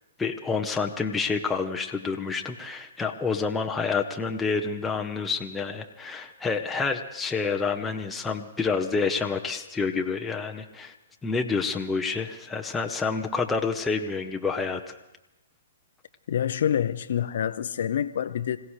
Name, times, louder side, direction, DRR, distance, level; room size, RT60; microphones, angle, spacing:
voice 1, 0.2-10.9 11.2-15.0, left 4 dB, 10° left, 0.9 m, -28 dB
voice 2, 16.3-18.6, left 9 dB, 65° left, 0.6 m, -27 dB
26.0 x 16.0 x 3.2 m
hypercardioid pair, 125°, 0 cm